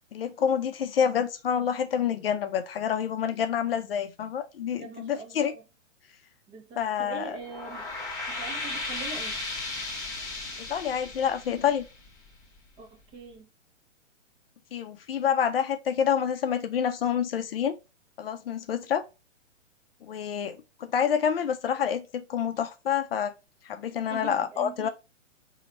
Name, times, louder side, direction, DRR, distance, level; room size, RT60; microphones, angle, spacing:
voice 1, 0.1-5.5 6.8-7.4 10.6-11.8 14.7-17.7 18.2-19.0 20.0-23.3 23.6-24.9, left 8 dB, 50° left, 0.6 m, -28 dB
voice 2, 4.8-5.6 6.5-7.9 8.3-9.4 12.8-13.5 24.1-24.9, right 5 dB, 15° right, 0.6 m, -42 dB
sound 1, 7.3-12.6, left 2 dB, 10° left, 1.0 m, -35 dB
3.9 x 2.8 x 4.1 m
figure-of-eight pair, 125°, 38 cm